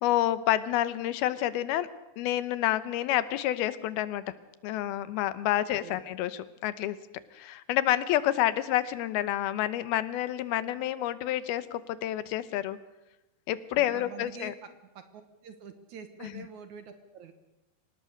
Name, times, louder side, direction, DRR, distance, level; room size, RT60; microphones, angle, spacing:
voice 1, 0.0-1.9 2.2-4.2 4.6-7.0 7.3-12.8 13.5-14.5 16.2-16.4, left 13 dB, 90° left, 15 dB, 2.8 m, -29 dB
voice 2, 5.6-6.0 13.8-14.5 14.9-17.3, right 6 dB, 60° right, 9 dB, 2.3 m, -46 dB
24.5 x 18.5 x 6.6 m, 0.98 s
omnidirectional pair, 4.3 m